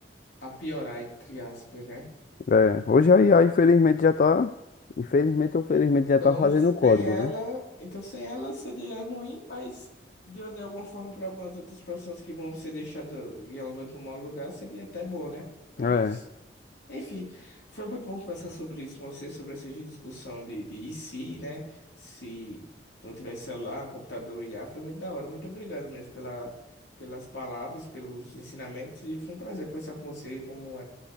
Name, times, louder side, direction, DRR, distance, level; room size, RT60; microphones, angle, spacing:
voice 1, 0.4-2.1 6.2-6.5 6.8-9.9 10.2-15.5 15.8-16.2 16.9-22.7 23.0-26.5 27.0-30.8, left 1 dB, 75° left, -3 dB, 3.9 m, -38 dB
voice 2, 2.5-4.5 5.0-7.3 15.8-16.2, left 4 dB, 50° left, 11 dB, 0.3 m, -20 dB
17.5 x 8.5 x 3.3 m, 1.0 s
head